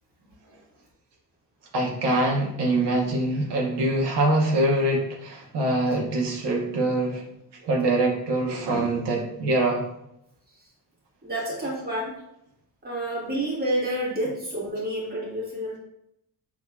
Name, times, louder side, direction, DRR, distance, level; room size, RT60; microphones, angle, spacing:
voice 1, 1.7-7.2 7.6-9.8 11.6-11.7 14.2-14.3, right 1 dB, 90° right, -1 dB, 1.0 m, -24 dB
voice 2, 11.2-12.1 12.8-15.8, right 1 dB, 25° right, -5 dB, 1.3 m, -29 dB
5.9 x 2.9 x 2.2 m, 0.80 s
wide cardioid pair, 155°, 40 cm